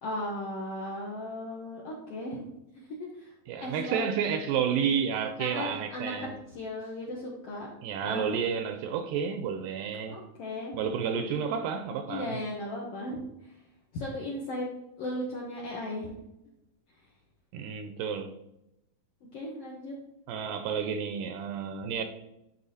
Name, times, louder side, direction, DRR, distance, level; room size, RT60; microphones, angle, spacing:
voice 1, 0.0-2.4 3.0-3.3 3.6-4.1 5.4-6.1 6.5-7.7 8.0-8.3 10.1-10.8 12.1-13.5 13.9-14.7 15.0-16.2 19.3-19.9, left 1 dB, 70° left, 1.4 m, -36 dB
voice 2, 3.5-6.3 7.8-10.2 10.8-12.4 17.5-18.3 20.3-22.0, right 7 dB, 80° right, 2.0 m, -31 dB
10.5 x 4.0 x 2.7 m
omnidirectional pair, 4.0 m